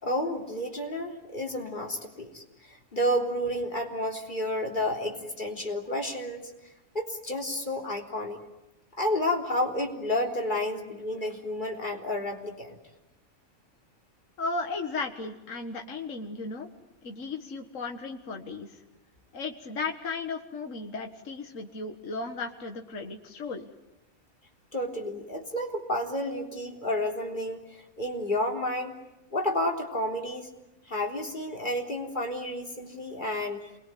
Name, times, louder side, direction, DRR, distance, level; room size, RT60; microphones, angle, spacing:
voice 1, 0.0-6.5 6.9-8.4 9.0-12.8 24.7-29.0 29.3-30.5 30.9-33.6, left 1 dB, 35° left, 1 dB, 3.9 m, -31 dB
voice 2, 14.4-16.7 17.0-18.8 19.3-23.7, left 3 dB, 65° left, 3 dB, 2.0 m, -35 dB
28.0 x 22.0 x 9.3 m, 0.97 s
omnidirectional pair, 1.4 m